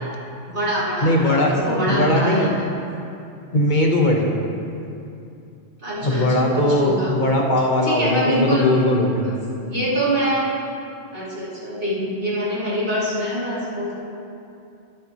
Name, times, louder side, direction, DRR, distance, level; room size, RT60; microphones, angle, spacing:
voice 1, 0.5-2.5 5.8-7.1 7.8-8.7 9.2-9.3 9.6-10.4 11.1-13.9, equal, 45° right, -9 dB, 3.2 m, -24 dB
voice 2, 1.0-1.5 1.8-2.5 3.5-4.3 6.0-9.3, left 1 dB, 40° left, 0 dB, 1.4 m, -19 dB
20.0 x 8.4 x 3.1 m, 2.6 s
omnidirectional pair, 1.2 m